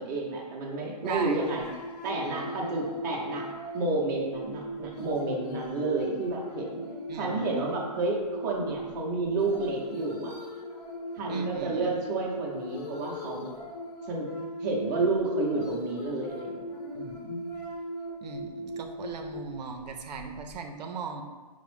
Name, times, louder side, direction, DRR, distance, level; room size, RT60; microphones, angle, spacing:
voice 1, 0.0-1.6 2.0-3.5 3.7-6.8 7.2-10.3 11.2-13.5 14.1-14.3 14.6-16.5 16.9-17.4, right 3 dB, 25° right, -3 dB, 0.5 m, -30 dB
sound 1, 1.0-20.6, equal, 80° left, 0.9 m, -39 dB
voice 2, 1.0-1.4 2.3-2.5 7.1-7.5 11.3-11.9 18.2-21.2, right 5 dB, 85° right, 4 dB, 0.5 m, -37 dB
4.9 x 2.0 x 3.1 m, 1.3 s
hypercardioid pair, 165°, 21 cm